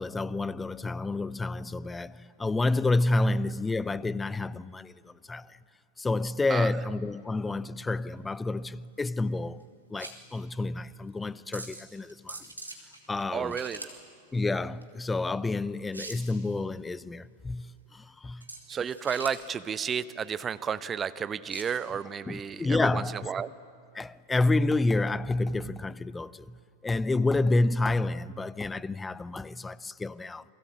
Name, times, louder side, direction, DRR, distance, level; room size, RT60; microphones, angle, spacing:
voice 1, 0.0-5.5 6.0-9.6 9.9-12.4 13.1-13.6 14.3-18.4 22.3-23.2 23.9-26.6 26.8-30.4, left 2 dB, 10° left, 0.6 m, -29 dB
sound 1, 7.1-21.7, right 2 dB, 85° right, 2.9 m, -46 dB
voice 2, 13.3-13.9 18.7-23.5, right 7 dB, 20° right, 0.8 m, -32 dB
28.5 x 22.5 x 8.8 m
figure-of-eight pair, 90°, 0 cm